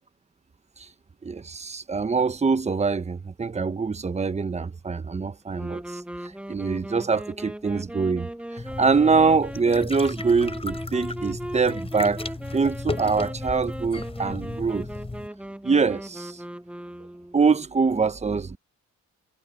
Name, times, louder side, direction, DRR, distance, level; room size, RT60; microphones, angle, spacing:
voice 1, 1.2-6.0 6.5-12.2 12.5-14.9 15.6-16.4 17.3-18.6, right 4 dB, 20° right, 1.2 m, -24 dB
sound 1, 5.5-17.4, right 1 dB, 5° right, 1.1 m, -38 dB
sound 2, 8.6-15.3, left 3 dB, 20° left, 5.3 m, -35 dB
cardioid pair, 90°, 30 cm